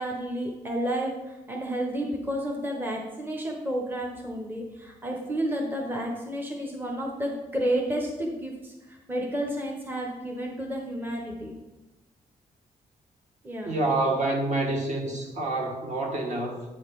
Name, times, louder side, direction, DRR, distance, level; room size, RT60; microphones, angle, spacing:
voice 1, 0.0-11.5 13.4-13.8, right 1 dB, 15° right, 0 dB, 0.8 m, -31 dB
voice 2, 13.6-16.6, right 2 dB, 55° right, 1 dB, 1.4 m, -27 dB
8.5 x 3.9 x 5.2 m, 1.1 s
wide cardioid pair, 170°, 14 cm